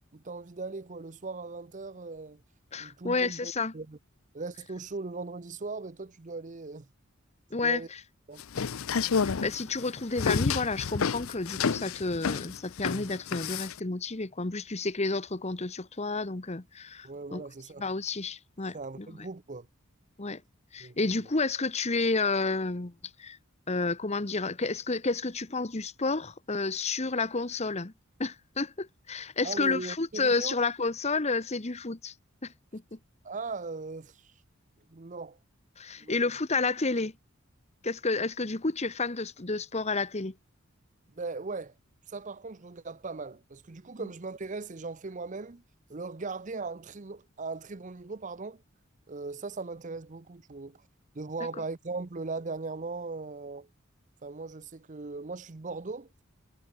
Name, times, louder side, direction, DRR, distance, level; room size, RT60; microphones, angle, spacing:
voice 1, 0.1-2.4 2.8-4.0 4.3-6.9 7.5-7.9 8.3-8.4 17.0-17.8 18.7-19.7 20.8-21.0 29.4-30.6 33.2-34.3 34.9-35.4 36.0-36.1 41.2-41.7 42.1-45.6 45.9-48.6 49.1-50.8 51.1-53.7 54.2-56.1, right 3 dB, 35° right, 0.7 m, -39 dB
voice 2, 2.7-3.7 7.5-7.8 9.4-17.4 17.8-19.1 20.2-20.4 20.7-22.9 23.2-23.4 23.7-27.9 28.2-32.1 32.4-33.0 35.8-37.1 37.8-40.3, left 3 dB, 30° left, 1.1 m, -30 dB
sound 1, 8.4-13.8, left 5 dB, 80° left, 0.6 m, -30 dB
head